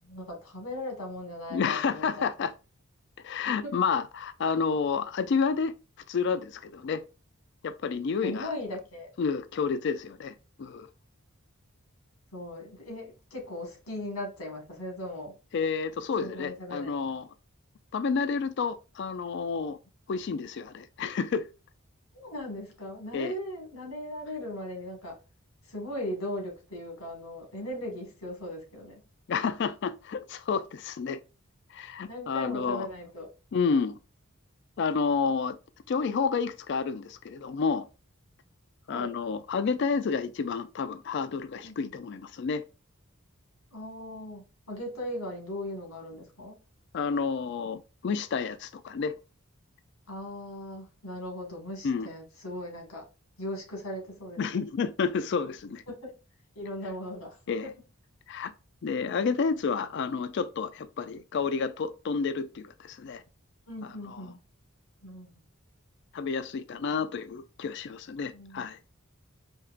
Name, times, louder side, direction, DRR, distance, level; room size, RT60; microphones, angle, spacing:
voice 1, 0.0-2.3 3.6-3.7 8.2-9.1 12.3-15.3 16.2-17.0 22.1-25.2 25.6-29.0 32.1-33.3 38.9-39.2 41.6-41.9 43.7-46.6 50.1-53.1 53.4-54.6 55.9-56.1 56.5-57.7 63.7-64.4 65.0-65.4 68.3-68.7, left 1 dB, 90° left, 1.6 m, -38 dB
voice 2, 1.5-2.5 3.2-5.7 6.1-7.0 7.6-8.5 9.2-10.9 15.5-17.2 17.9-19.8 20.1-21.5 23.1-23.3 29.3-31.2 31.7-32.9 33.5-34.0 34.8-35.6 35.9-37.9 38.9-42.6 46.9-49.2 51.8-52.1 54.4-55.8 57.5-57.7 58.3-58.5 58.8-63.2 64.1-64.2 66.1-68.8, left 5 dB, 55° left, 0.3 m, -30 dB
4.5 x 2.8 x 2.4 m
head